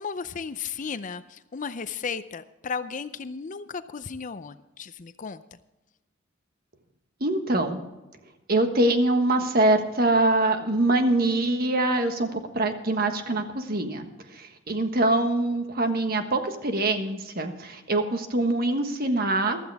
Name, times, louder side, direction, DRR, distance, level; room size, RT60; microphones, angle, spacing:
voice 1, 0.0-5.6, left 5 dB, 40° left, 13 dB, 0.5 m, -35 dB
voice 2, 7.2-7.8 8.5-14.0 14.3-19.6, right 2 dB, 50° right, 6 dB, 1.5 m, -24 dB
15.0 x 13.0 x 3.5 m, 1.0 s
head